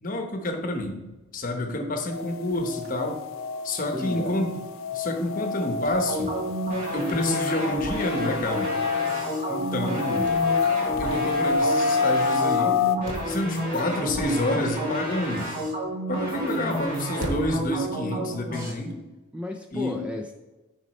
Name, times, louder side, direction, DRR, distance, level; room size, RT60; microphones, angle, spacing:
voice 1, 0.0-1.0 1.3-3.2 3.6-4.6 4.9-6.4 6.9-8.7 9.5-10.3 11.0-12.8 13.2-15.5 16.1-19.0 19.7-20.0, left 1 dB, 40° left, 4 dB, 0.9 m, -28 dB
sound 1, 1.0-17.9, right 1 dB, 60° right, 0.9 m, -43 dB
sound 2, 2.1-13.0, left 5 dB, 70° left, 0.5 m, -28 dB
voice 2, 3.9-4.5 19.3-20.3, left 2 dB, 5° right, 3 dB, 0.3 m, -33 dB
sound 3, 6.1-18.7, right 1 dB, 40° right, 2.0 m, -30 dB
6.2 x 5.2 x 4.2 m, 1.1 s
head